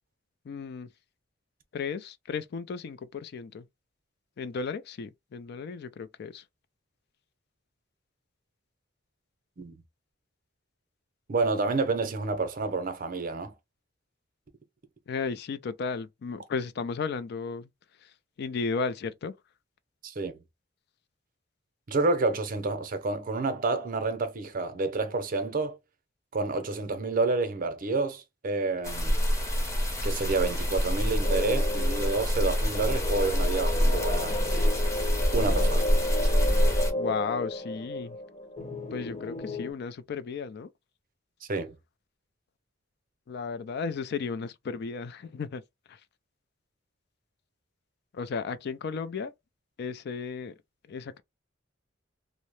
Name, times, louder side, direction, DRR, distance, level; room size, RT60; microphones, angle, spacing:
voice 1, 0.4-0.9 1.7-3.7 4.4-6.4 15.1-17.7 18.0-19.3 37.0-38.2 38.9-40.7 43.3-45.6 45.9-46.0 48.1-49.3 49.8-50.5 50.9-51.2, left 5 dB, 60° left, 0.4 m, -34 dB
voice 2, 11.3-13.5 20.0-20.4 21.9-25.8 26.3-29.2 30.0-34.7 35.3-35.9 41.5-41.8, right 3 dB, 45° right, 0.6 m, -29 dB
sound 1, 28.8-36.9, equal, 15° left, 0.7 m, -26 dB
sound 2, 31.2-39.7, left 2 dB, 40° left, 1.1 m, -34 dB
2.7 x 2.0 x 3.1 m
head